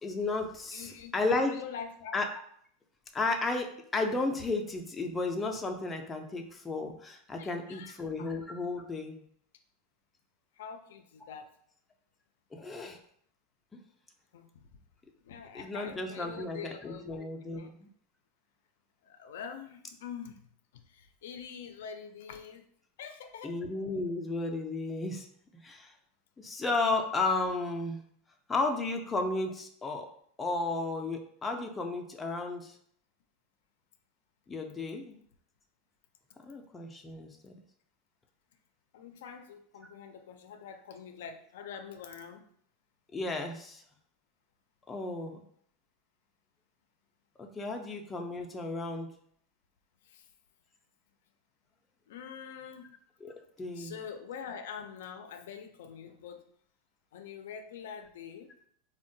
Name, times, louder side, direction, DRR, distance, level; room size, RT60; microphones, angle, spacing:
voice 1, 0.0-1.6 2.1-2.4 3.1-3.7 3.9-9.2 12.5-13.0 13.7-13.8 15.5-17.9 23.4-25.3 25.6-25.9 26.4-28.0 28.5-30.1 30.4-32.8 34.5-35.2 36.4-37.6 43.1-43.8 44.9-45.4 47.4-49.1 53.2-53.9, left 3 dB, 15° left, 2 dB, 0.3 m, -33 dB
voice 2, 0.7-1.1 1.5-2.1 7.3-8.3 10.6-11.5 14.3-14.7 15.2-17.7 19.0-20.4 20.7-22.7 23.0-23.6 38.9-42.4 50.0-50.3 52.1-52.9 53.7-56.4 57.1-58.5, left 7 dB, 85° left, 6 dB, 0.3 m, -45 dB
3.6 x 2.1 x 2.6 m, 0.64 s
supercardioid pair, 145°, 0 cm